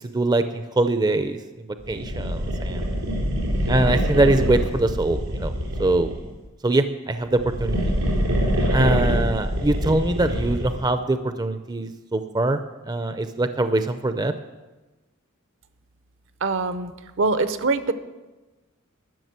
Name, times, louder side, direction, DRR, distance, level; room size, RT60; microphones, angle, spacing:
voice 1, 0.0-2.8 3.7-5.5 5.8-6.1 6.6-7.9 8.7-12.6 12.9-14.3, right 2 dB, 20° right, 9 dB, 0.5 m, -23 dB
sound 1, 1.9-6.3 7.2-10.9, equal, 85° right, 4.2 m, -25 dB
voice 2, 16.4-16.9 17.2-17.9, right 3 dB, 65° right, 11 dB, 0.8 m, -23 dB
12.5 x 6.7 x 9.5 m, 1.2 s
head